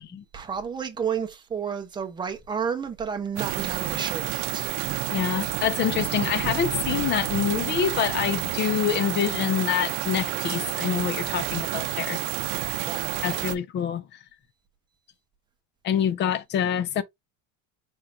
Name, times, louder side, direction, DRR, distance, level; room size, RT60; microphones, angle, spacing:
voice 1, 0.3-4.7 12.9-13.1, right 7 dB, 15° right, 0.7 m, -31 dB
sound 1, 3.4-13.6, right 16 dB, 60° right, 0.7 m, -29 dB
voice 2, 5.1-12.2 13.2-14.1 15.8-17.0, left 9 dB, 30° left, 0.5 m, -26 dB
4.5 x 3.7 x 2.6 m
cardioid pair, 170°, 34 cm